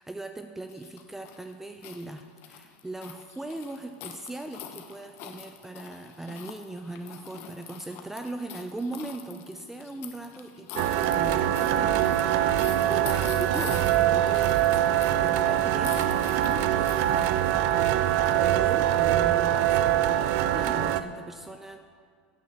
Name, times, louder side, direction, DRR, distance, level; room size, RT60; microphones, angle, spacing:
voice 1, 0.0-21.8, right 2 dB, 5° right, 6 dB, 0.5 m, -39 dB
sound 1, 0.7-18.3, left 9 dB, 50° left, 1.1 m, -44 dB
sound 2, 10.8-21.0, right 12 dB, 55° right, 0.5 m, -23 dB
9.3 x 8.3 x 7.2 m, 2.2 s
hypercardioid pair, 105°, 5 cm